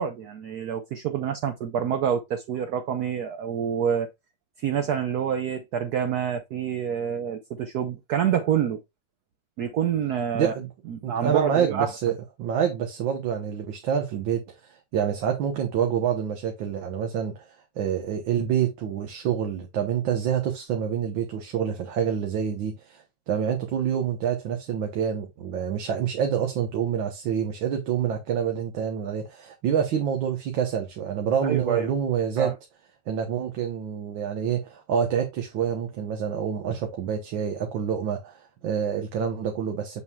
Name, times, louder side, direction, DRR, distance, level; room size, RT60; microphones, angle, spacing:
voice 1, 0.0-4.1 4.6-8.8 9.6-10.5 10.9-11.9 31.4-31.9 32.4-32.5, right 8 dB, 65° right, 1.2 m, -27 dB
voice 2, 10.3-10.7 11.0-12.1 12.4-14.4 14.7-17.5 17.8-32.5 33.1-40.0, right 8 dB, 85° right, 1.8 m, -27 dB
7.2 x 6.3 x 2.3 m
omnidirectional pair, 2.0 m